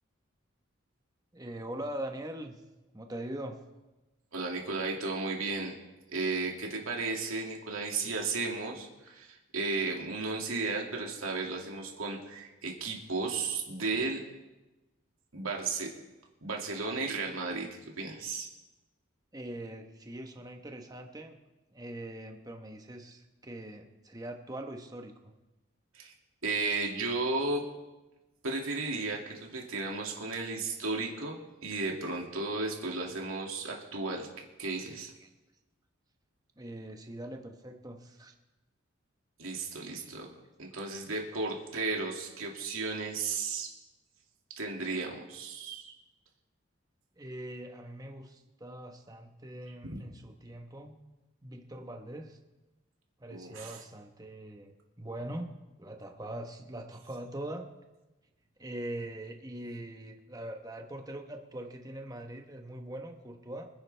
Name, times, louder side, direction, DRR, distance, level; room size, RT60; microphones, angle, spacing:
voice 1, 1.3-2.6 2.9-3.6 19.3-21.3 21.7-25.1 35.2-35.3 36.6-38.3 39.9-40.1 40.7-40.8 41.3-41.4 47.2-50.9 51.4-52.4 53.2-54.7 55.0-57.7 58.6-63.7, right 1 dB, 20° right, 4 dB, 1.1 m, -42 dB
voice 2, 4.3-5.7 6.1-14.2 15.3-15.9 16.4-18.5 25.9-26.1 26.4-27.6 28.4-34.3 34.6-35.1 39.4-40.3 40.6-43.7 44.6-45.9 49.8-50.0 53.3-53.8, right 3 dB, 90° right, 0 dB, 2.3 m, -34 dB
25.5 x 9.7 x 3.4 m, 1.1 s
head